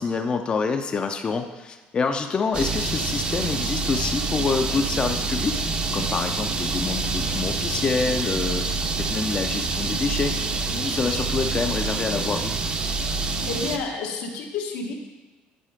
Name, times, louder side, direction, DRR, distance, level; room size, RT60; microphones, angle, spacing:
voice 1, 0.0-5.6 5.9-8.7 9.0-10.3 10.7-12.6, left 5 dB, 30° left, 5 dB, 0.5 m, -27 dB
sound 1, 2.5-13.8, right 3 dB, 30° right, 0.7 m, -27 dB
voice 2, 13.5-14.9, left 4 dB, 90° left, 1 dB, 1.3 m, -30 dB
10.0 x 4.2 x 5.0 m, 1.2 s
cardioid pair, 125°, 3 cm